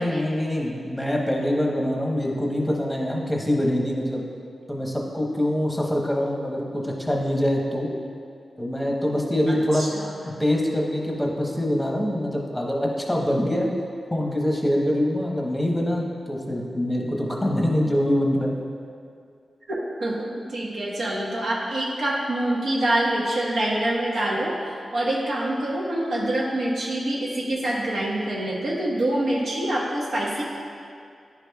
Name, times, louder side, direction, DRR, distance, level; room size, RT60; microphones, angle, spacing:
voice 1, 0.0-4.2 4.7-7.9 8.6-9.9 10.2-13.7 14.1-18.5, left 1 dB, 5° left, -1 dB, 0.8 m, -24 dB
voice 2, 9.5-10.1 19.7-30.4, right 1 dB, 80° right, -5 dB, 1.2 m, -26 dB
9.9 x 4.8 x 2.3 m, 2.3 s
wide cardioid pair, 105°, 0 cm